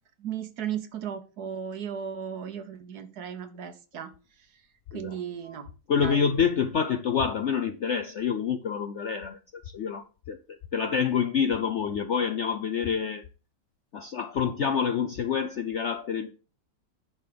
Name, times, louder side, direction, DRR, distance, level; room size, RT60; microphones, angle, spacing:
voice 1, 0.2-4.1 4.9-5.7 6.0-6.2, right 8 dB, 65° right, 9 dB, 1.5 m, -35 dB
voice 2, 5.9-9.4 9.6-10.4 10.7-13.2 13.9-16.3, left 7 dB, 60° left, 8 dB, 0.7 m, -27 dB
10.0 x 3.9 x 6.6 m, 0.35 s
omnidirectional pair, 1.9 m